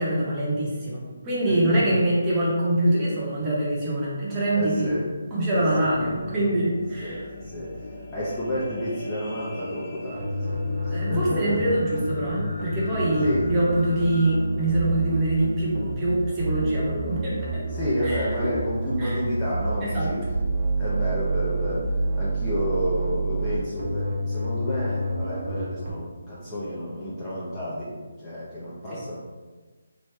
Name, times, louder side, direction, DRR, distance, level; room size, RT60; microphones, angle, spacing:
voice 1, 0.0-4.9 5.3-7.2 10.9-17.6 18.0-18.3 19.0-19.2 19.8-20.1 28.9-29.0, right 1 dB, 15° right, -8 dB, 0.9 m, -24 dB
voice 2, 1.5-1.8 4.5-5.0 5.5-5.9 7.0-7.8 8.1-11.8 13.2-13.5 17.7-20.2 20.8-29.2, equal, 10° left, -10 dB, 0.7 m, -30 dB
sound 1, 5.6-15.9 16.5-16.6, left 1 dB, 45° left, 0.8 m, -39 dB
sound 2, 10.1-25.9, right 2 dB, 50° right, 0.8 m, -28 dB
3.1 x 2.7 x 4.4 m, 1.3 s
hypercardioid pair, 170°, 0 cm